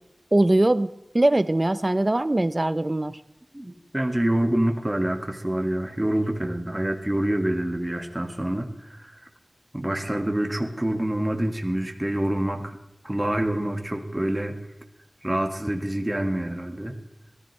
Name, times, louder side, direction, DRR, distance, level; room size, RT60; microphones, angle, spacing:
voice 1, 0.3-0.9 1.1-3.2, right 1 dB, 40° right, 14 dB, 0.7 m, -21 dB
voice 2, 3.5-9.2 9.7-12.8 13.0-14.6 15.2-17.0, right 1 dB, 20° right, 3 dB, 1.8 m, -26 dB
19.0 x 14.0 x 3.3 m, 0.93 s
wide cardioid pair, 50°, 0 cm